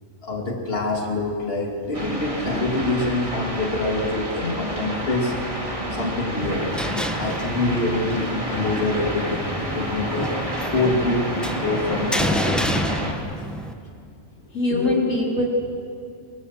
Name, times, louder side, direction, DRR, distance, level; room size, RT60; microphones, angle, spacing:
voice 1, 0.2-5.3 5.9-6.7 7.2-10.4 10.7-12.8 14.7-15.0, left 2 dB, 50° left, 0 dB, 3.0 m, -25 dB
sound 1, 1.9-13.1, right 1 dB, 25° right, 3.2 m, -29 dB
sound 2, 6.4-13.7, equal, ahead, 1.3 m, -30 dB
voice 2, 14.5-15.4, left 2 dB, 85° left, -2 dB, 4.1 m, -22 dB
26.0 x 24.0 x 7.6 m, 2.4 s
omnidirectional pair, 1.3 m